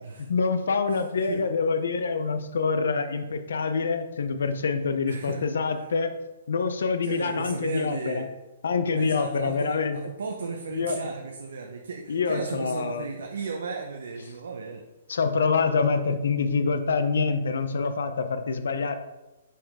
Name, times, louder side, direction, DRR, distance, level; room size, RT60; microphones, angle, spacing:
voice 1, 0.2-6.1 6.5-8.3 8.6-10.0 10.7-11.0 12.1-13.0 15.1-18.9, left 4 dB, 80° left, 9 dB, 0.6 m, -26 dB
voice 2, 0.9-1.4 5.1-5.4 5.7-5.9 7.0-8.3 9.0-14.9, right 4 dB, 85° right, 2 dB, 0.7 m, -35 dB
5.5 x 5.0 x 3.6 m, 1.1 s
hypercardioid pair, 175°, 0 cm